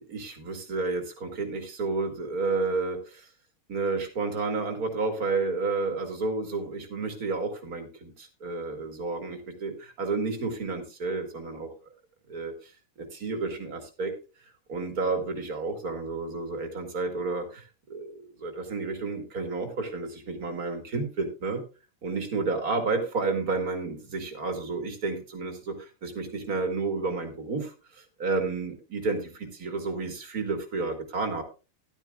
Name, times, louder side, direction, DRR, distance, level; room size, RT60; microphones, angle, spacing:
voice 1, 0.0-3.3 3.7-11.7 12.3-12.7 13.0-14.1 14.7-21.6 22.0-31.4, right 3 dB, 85° right, 5 dB, 2.6 m, -31 dB
13.5 x 11.5 x 2.4 m, 0.32 s
omnidirectional pair, 1.5 m